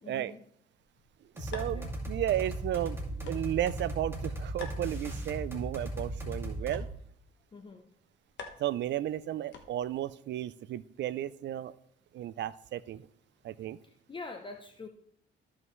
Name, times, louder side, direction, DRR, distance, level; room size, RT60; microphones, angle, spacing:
voice 1, 0.0-0.4 1.7-1.9 7.5-8.0 13.8-14.9, left 3 dB, 25° left, 5 dB, 0.7 m, -45 dB
sound 1, 0.8-10.1, left 4 dB, 65° left, 1.3 m, -52 dB
sound 2, 1.4-6.9, right 1 dB, 10° right, 2.3 m, -37 dB
voice 2, 1.4-6.9 8.6-11.7 12.1-13.1 13.4-13.8, right 12 dB, 65° right, 17 dB, 0.4 m, -34 dB
14.0 x 5.5 x 3.2 m, 0.70 s
cardioid pair, 90°, 20 cm